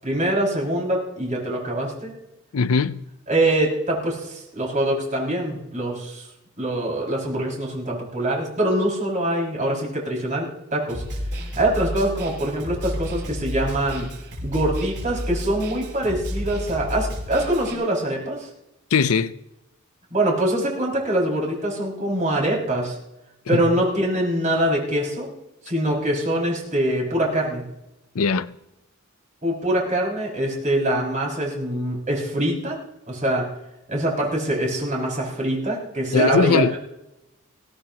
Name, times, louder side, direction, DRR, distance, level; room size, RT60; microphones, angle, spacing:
voice 1, 0.0-2.1 3.3-6.3 6.6-11.0 11.5-14.1 14.4-18.5 20.1-23.0 23.5-25.3 25.6-27.6 29.4-32.8 33.1-33.5 33.9-36.8, right 1 dB, 35° right, 6.0 m, -24 dB
voice 2, 2.5-3.0 18.9-19.3 23.5-23.6 28.2-28.6 36.1-36.7, left 5 dB, 85° left, 0.6 m, -20 dB
Snare drum, 10.9-17.7, equal, 55° right, 6.9 m, -31 dB
22.0 x 17.0 x 3.0 m
head